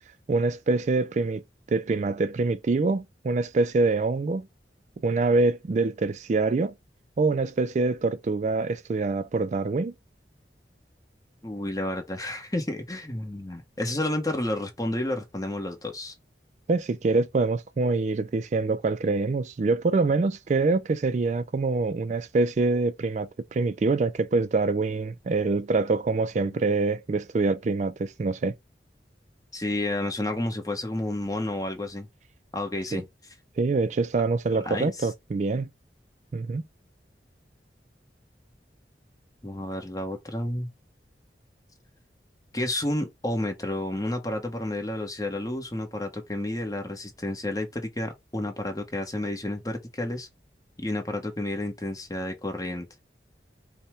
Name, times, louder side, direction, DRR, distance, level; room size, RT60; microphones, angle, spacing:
voice 1, 0.3-1.4 1.7-4.5 5.0-6.7 7.2-9.9 16.7-28.5 32.9-33.0 33.6-35.7 36.3-36.6, right 3 dB, 40° right, 0.3 m, -25 dB
voice 2, 11.4-16.1 26.4-26.6 29.5-32.1 32.5-33.0 34.6-35.1 39.4-40.7 42.5-50.3 50.8-52.9, left 1 dB, 20° left, 1.0 m, -31 dB
5.4 x 2.2 x 4.5 m
head